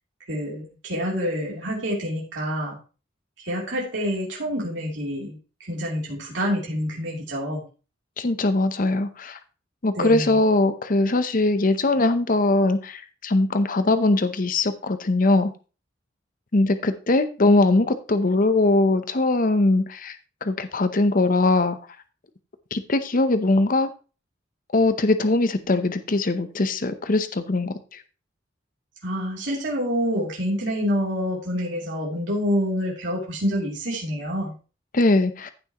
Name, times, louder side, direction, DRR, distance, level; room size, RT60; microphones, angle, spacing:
voice 1, 0.3-2.8 3.4-5.4 5.7-7.6 10.0-10.4 29.0-34.5, equal, 85° right, -4 dB, 3.2 m, -27 dB
voice 2, 8.2-9.4 9.8-15.5 16.5-20.1 20.4-21.8 22.7-23.9 24.7-27.7 34.9-35.5, left 2 dB, 50° left, 11 dB, 0.8 m, -21 dB
15.0 x 6.1 x 3.0 m, 0.33 s
head